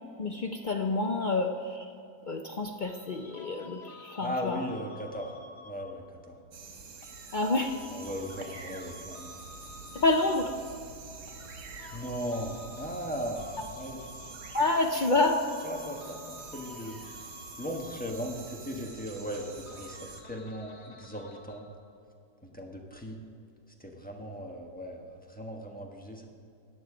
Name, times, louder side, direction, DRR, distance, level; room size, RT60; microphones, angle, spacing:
voice 1, 0.2-1.9 2.3-4.6 7.3-7.8 9.9-10.5 14.5-15.4, left 2 dB, 70° left, 3 dB, 0.4 m, -28 dB
sound 1, 2.8-6.2 7.0-10.8 11.3-15.2 15.5-21.8, left 3 dB, 45° left, 1.2 m, -51 dB
voice 2, 4.2-5.4 5.6-6.4 7.9-9.4 11.9-14.0 15.1-15.2 15.6-17.0 17.6-21.7 22.4-23.2 23.8-26.3, equal, 5° left, 0 dB, 1.2 m, -38 dB
sound 2, 6.5-20.2, right 5 dB, 90° right, 1.7 m, -47 dB
sound 3, 9.3-14.5, equal, 50° right, 1.6 m, -52 dB
14.5 x 9.3 x 5.0 m, 2.7 s
omnidirectional pair, 1.7 m